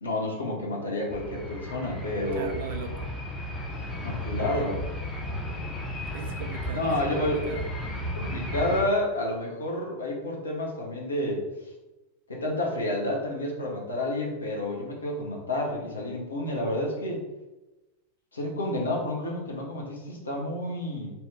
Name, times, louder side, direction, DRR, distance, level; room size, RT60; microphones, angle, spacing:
voice 1, 0.0-2.6 4.0-4.9 6.7-7.4 8.1-11.4 12.3-17.2 18.3-21.1, left 1 dB, 75° left, -2 dB, 0.8 m, -30 dB
sound 1, 1.1-8.8, left 1 dB, 15° left, 0.6 m, -34 dB
voice 2, 2.3-3.1 6.1-7.7, right 6 dB, 55° right, 5 dB, 0.4 m, -39 dB
2.7 x 2.3 x 3.2 m, 1.0 s
figure-of-eight pair, 90°, 0 cm